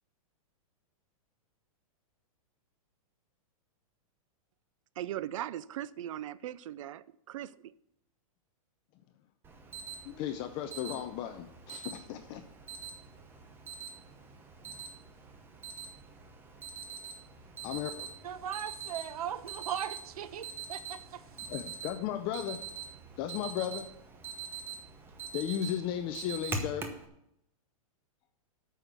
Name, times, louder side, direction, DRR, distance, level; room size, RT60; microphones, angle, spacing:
voice 1, 5.0-7.5, right 12 dB, 60° right, 0.5 m, -39 dB
Alarm, 9.4-27.1, right 5 dB, 10° right, 0.8 m, -44 dB
voice 2, 10.0-12.4 17.6-18.1 21.5-22.7 23.2-23.9 25.3-26.9, left 10 dB, 25° left, 0.5 m, -35 dB
voice 3, 18.2-21.2, right 9 dB, 85° right, 0.9 m, -38 dB
9.0 x 6.1 x 8.1 m
supercardioid pair, 160°, 19 cm